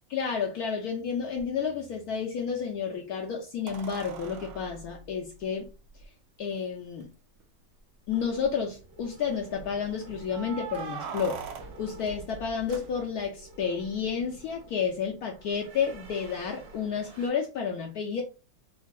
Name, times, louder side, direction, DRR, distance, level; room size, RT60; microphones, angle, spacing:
voice 1, 0.1-5.7 6.4-7.1 8.1-11.4 11.8-18.2, left 6 dB, 65° left, 1.0 m, -31 dB
sound 1, 1.4-1.5 3.7-6.0 7.0-7.1 7.4-7.5 8.0-8.5 10.2-13.4 15.9-16.0, right 6 dB, 70° right, 0.7 m, -42 dB
sound 2, 8.1-17.3, right 2 dB, 85° right, 1.9 m, -50 dB
4.6 x 2.5 x 2.3 m
omnidirectional pair, 1.9 m